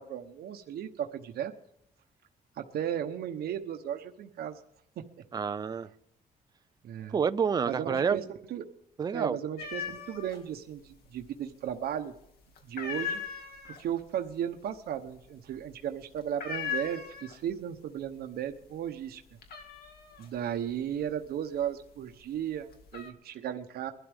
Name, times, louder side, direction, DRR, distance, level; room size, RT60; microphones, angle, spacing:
voice 1, 0.0-1.5 2.6-4.6 6.8-7.2 7.7-8.7 9.1-12.1 12.6-13.2 13.6-19.2 20.2-23.9, right 9 dB, 85° right, 6 dB, 1.0 m, -35 dB
voice 2, 5.3-5.9 7.1-8.3 9.0-9.4, right 6 dB, 25° right, 12 dB, 0.5 m, -28 dB
sound 1, 9.6-10.4 10.7-11.5 11.8-12.2 12.6-17.7 18.0-18.5 18.8-22.0 22.5-23.1, left 7 dB, 85° left, 2.3 m, -39 dB
22.0 x 12.5 x 3.6 m, 0.76 s
cardioid pair, 165°, 16 cm